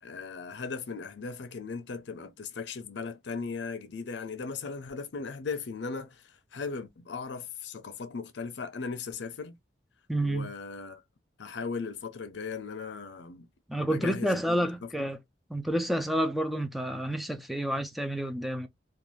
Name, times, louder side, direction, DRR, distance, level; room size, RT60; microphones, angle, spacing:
voice 1, 0.0-9.6 10.2-11.0 11.4-13.5 13.8-15.1, left 5 dB, 70° left, 0.5 m, -38 dB
voice 2, 10.1-10.5 13.7-15.2 15.5-18.7, right 1 dB, ahead, 0.3 m, -29 dB
2.5 x 2.3 x 3.1 m
head